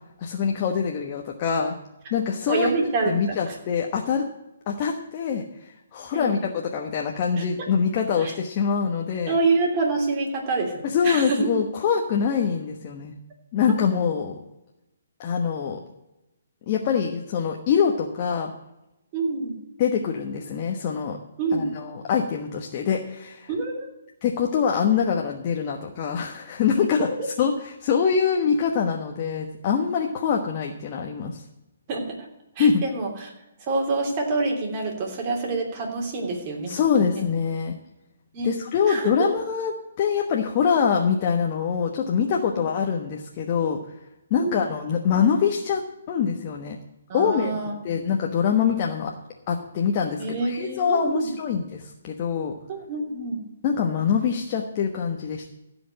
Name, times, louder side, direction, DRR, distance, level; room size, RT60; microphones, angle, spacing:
voice 1, 0.2-1.7 2.1-2.7 3.1-4.2 4.7-9.4 10.8-13.1 13.5-14.4 15.2-15.8 16.7-18.5 19.8-21.2 21.5-23.5 24.2-27.1 27.4-31.4 32.6-32.8 36.7-37.8 38.4-43.8 44.3-45.8 46.1-46.8 47.1-49.1 49.5-52.5 53.6-55.4, left 6 dB, 35° left, 1 dB, 1.2 m, -24 dB
voice 2, 2.5-3.5 6.1-6.4 7.4-7.7 8.2-8.3 9.3-11.5 19.1-19.5 21.4-21.7 23.5-23.9 31.9-32.2 32.6-33.3 33.7-36.7 37.1-37.2 38.3-38.5 38.9-39.3 44.4-44.5 47.1-47.7 48.0-48.2 50.2-51.3 52.7-53.4, right 3 dB, 30° right, 0 dB, 3.2 m, -27 dB
15.5 x 5.2 x 8.7 m, 0.94 s
hypercardioid pair, 150°, 0 cm